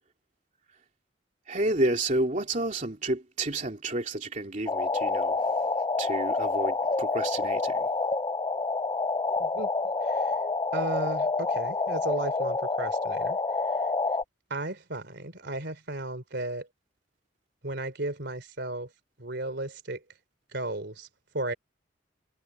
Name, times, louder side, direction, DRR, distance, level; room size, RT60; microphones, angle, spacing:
voice 1, 1.5-5.7 6.0-7.9, right 2 dB, 40° right, 2.9 m, -30 dB
sound 1, 4.7-14.2, left 3 dB, 20° left, 0.4 m, -28 dB
voice 2, 9.4-9.7 10.0-10.3 10.7-13.4 14.5-16.7 17.6-18.9 19.2-20.0 20.5-21.1 21.3-21.5, right 2 dB, 60° right, 3.6 m, -34 dB
head